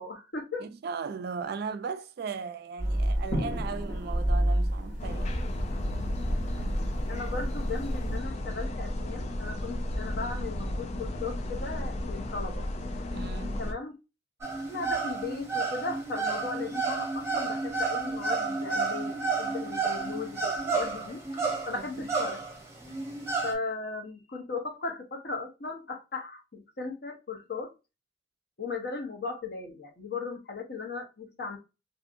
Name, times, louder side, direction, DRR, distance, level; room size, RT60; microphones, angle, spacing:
voice 1, 0.0-0.7 7.1-12.7 13.6-14.0 14.5-22.4 23.4-27.7 28.6-31.6, left 4 dB, 55° left, 0.7 m, -37 dB
voice 2, 0.6-5.4 13.1-13.6 21.7-21.8, right 5 dB, 55° right, 0.3 m, -37 dB
sound 1, 2.8-8.2, equal, 75° left, 1.4 m, -30 dB
sound 2, 5.0-13.7, left 1 dB, 35° left, 0.3 m, -34 dB
sound 3, 14.4-23.5, right 4 dB, 15° right, 0.7 m, -31 dB
2.6 x 2.6 x 2.5 m
head